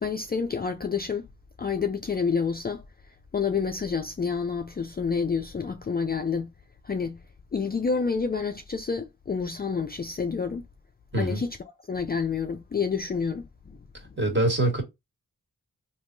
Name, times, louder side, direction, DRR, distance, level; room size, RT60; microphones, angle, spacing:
voice 1, 0.0-1.3 1.6-2.8 3.3-6.5 6.8-7.2 7.5-10.6 11.2-11.5 11.9-13.5, left 5 dB, 30° left, 0.4 m, -28 dB
voice 2, 14.2-14.8, right 1 dB, 30° right, 1.5 m, -24 dB
3.5 x 2.7 x 2.6 m
cardioid pair, 45°, 35 cm